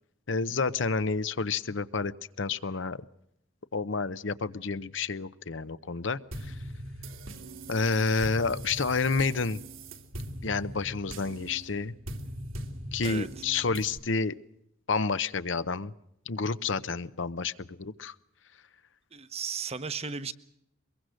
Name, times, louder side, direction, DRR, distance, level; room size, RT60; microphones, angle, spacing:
voice 1, 0.3-2.1 2.4-3.0 3.7-6.5 7.7-9.6 10.4-11.9 12.9-14.4 14.9-15.9 16.3-18.1, left 4 dB, 65° left, 14 dB, 0.8 m, -29 dB
sound 1, 6.3-14.0, right 1 dB, 75° right, 2.7 m, -41 dB
voice 2, 19.1-20.3, right 5 dB, 30° right, 12 dB, 1.0 m, -35 dB
23.5 x 22.5 x 6.4 m, 0.78 s
head